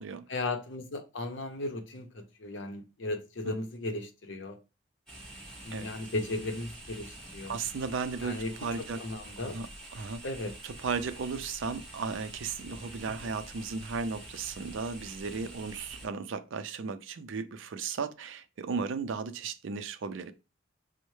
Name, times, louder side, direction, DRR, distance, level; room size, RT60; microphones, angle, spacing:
voice 1, 0.3-4.6 5.6-7.6 8.2-8.5 9.0-9.6 10.2-10.5 13.1-13.3, left 2 dB, 65° left, 0.7 m, -36 dB
sound 1, 5.1-16.1, right 1 dB, 5° left, 1.9 m, -47 dB
voice 2, 7.5-9.0 9.4-9.7 9.9-10.2 10.6-20.3, right 5 dB, 70° right, 0.4 m, -35 dB
5.3 x 2.1 x 3.1 m
head